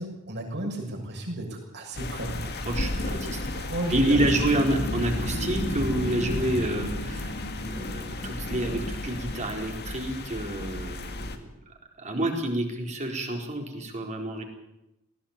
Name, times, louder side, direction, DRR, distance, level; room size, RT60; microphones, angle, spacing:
voice 1, 0.0-2.7 3.5-4.4, right 1 dB, 55° right, 1 dB, 7.1 m, -33 dB
sound 1, 1.9-11.4, left 2 dB, 50° left, 2.1 m, -34 dB
voice 2, 2.7-3.4 3.9-14.4, right 1 dB, 35° right, 2 dB, 4.2 m, -29 dB
sound 2, 4.1-10.3, left 1 dB, 85° left, 3.1 m, -34 dB
19.5 x 17.0 x 8.9 m, 0.89 s
head